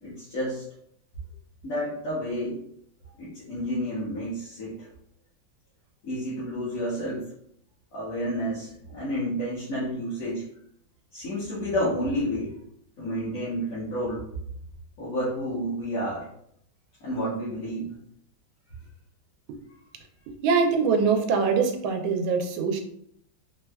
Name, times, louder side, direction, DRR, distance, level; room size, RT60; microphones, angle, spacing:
voice 1, 0.0-0.7 1.6-2.6 3.2-4.9 6.0-7.3 7.9-10.5 11.1-12.6 13.0-14.2 15.0-16.3 17.0-18.0, equal, 55° left, -9 dB, 1.1 m, -30 dB
voice 2, 20.4-22.8, right 5 dB, 80° right, 3 dB, 1.3 m, -23 dB
4.3 x 2.3 x 2.2 m, 0.69 s
omnidirectional pair, 2.2 m